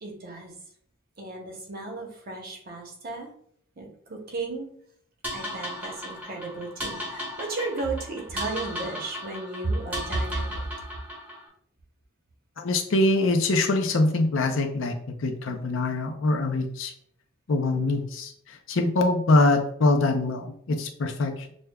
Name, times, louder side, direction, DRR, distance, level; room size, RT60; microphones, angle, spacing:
voice 1, 0.0-0.5 1.2-3.3 3.8-4.7 5.3-10.6, right 2 dB, 45° right, 1 dB, 0.9 m, -33 dB
sound 1, 5.2-11.5, equal, 10° right, 0.9 m, -36 dB
voice 2, 12.6-14.9 15.2-16.9 17.5-21.5, left 2 dB, 65° left, 5 dB, 0.5 m, -24 dB
6.3 x 2.2 x 2.3 m, 0.64 s
head